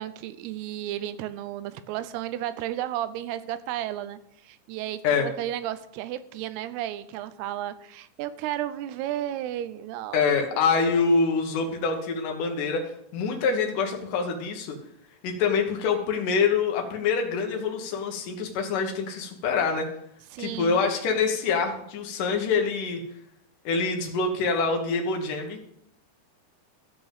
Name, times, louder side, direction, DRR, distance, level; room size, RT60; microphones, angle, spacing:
voice 1, 0.0-10.6 20.3-20.8, right 12 dB, 90° right, 13 dB, 2.7 m, -33 dB
voice 2, 10.1-14.8 15.2-19.9 20.4-23.0 23.6-25.6, left 5 dB, 65° left, 3 dB, 2.7 m, -25 dB
13.0 x 5.0 x 7.2 m, 0.74 s
omnidirectional pair, 4.6 m